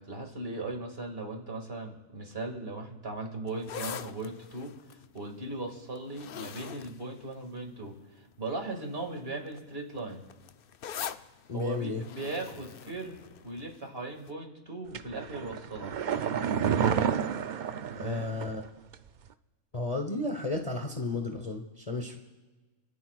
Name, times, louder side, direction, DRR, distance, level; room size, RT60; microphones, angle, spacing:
voice 1, 0.0-4.7 5.1-10.2 11.5-13.2 13.4-15.9 17.9-18.3, right 2 dB, 45° right, 2 dB, 2.3 m, -38 dB
sound 1, 3.5-7.9 8.7-9.0 9.2-13.8 14.3-14.4, left 8 dB, 65° left, 0.6 m, -43 dB
voice 2, 11.5-12.0 18.0-18.6 19.7-22.2, left 3 dB, 30° left, 3 dB, 1.0 m, -33 dB
sound 2, 14.9-18.7 18.9-19.0, right 8 dB, 80° right, 0.4 m, -30 dB
28.5 x 13.5 x 2.4 m, 1.3 s
omnidirectional pair, 1.4 m